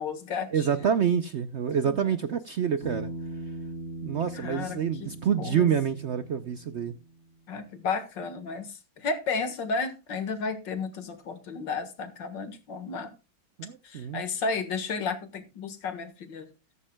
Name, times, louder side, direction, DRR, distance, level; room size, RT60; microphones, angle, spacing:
voice 1, 0.0-0.9 1.8-2.1 4.3-5.1 5.4-5.7 7.5-13.1 13.8-16.5, left 4 dB, 70° left, 2.2 m, -33 dB
voice 2, 0.5-3.1 4.0-6.9 13.6-14.2, right 8 dB, 80° right, 0.6 m, -27 dB
Bass guitar, 2.8-7.1, right 2 dB, 55° left, 4.0 m, -40 dB
14.0 x 13.5 x 2.2 m
omnidirectional pair, 2.0 m